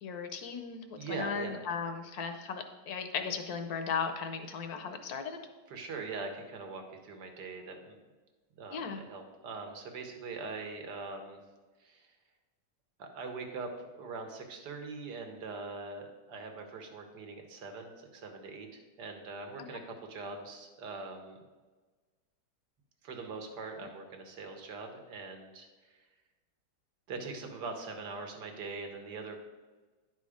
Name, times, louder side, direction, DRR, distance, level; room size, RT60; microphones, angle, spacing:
voice 1, 0.0-5.4 8.7-9.0, left 6 dB, 70° left, 7 dB, 1.2 m, -36 dB
voice 2, 1.0-1.6 5.7-8.0 8.6-11.4 11.8-12.2 13.0-21.4 23.0-26.1 27.1-29.4, right 3 dB, 80° right, 4 dB, 1.6 m, -42 dB
9.8 x 4.2 x 4.9 m, 1.3 s
omnidirectional pair, 1.8 m